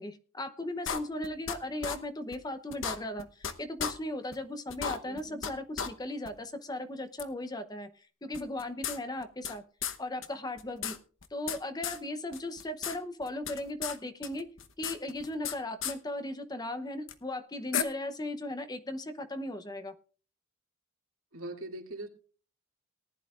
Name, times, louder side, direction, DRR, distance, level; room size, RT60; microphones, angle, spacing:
voice 1, 0.0-9.6 10.0-10.9 11.3-14.5 14.8-19.9, left 1 dB, 20° left, 9 dB, 0.8 m, -37 dB
sound 1, 0.9-1.6 1.8-2.0 2.3-2.4 2.7-3.5 3.8-3.9 4.3-4.4 4.7-5.5 5.8-5.9 6.2-6.3 7.2-7.3 8.3-9.5 9.8-10.0 10.2-10.3 10.6-11.6 11.8-12.0 12.3-13.0 13.2-14.0 14.2-15.5 15.8-15.9 17.1-17.2 17.7-17.8, left 7 dB, 65° left, 1.0 m, -34 dB
voice 2, 5.0-5.4 21.3-22.1, right 2 dB, 80° right, 1 dB, 2.5 m, -41 dB
19.0 x 11.0 x 2.5 m, 0.39 s
head